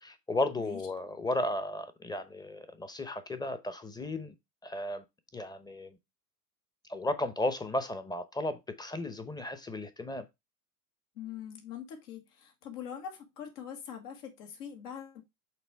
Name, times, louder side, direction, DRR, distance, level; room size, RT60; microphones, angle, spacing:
voice 1, 0.0-4.3 4.6-5.0 5.3-6.0 6.9-10.2, left 1 dB, 10° left, 0.8 m, -34 dB
voice 2, 11.2-15.2, left 8 dB, 70° left, 1.8 m, -43 dB
6.0 x 3.7 x 4.6 m
hypercardioid pair, 100°, 47 cm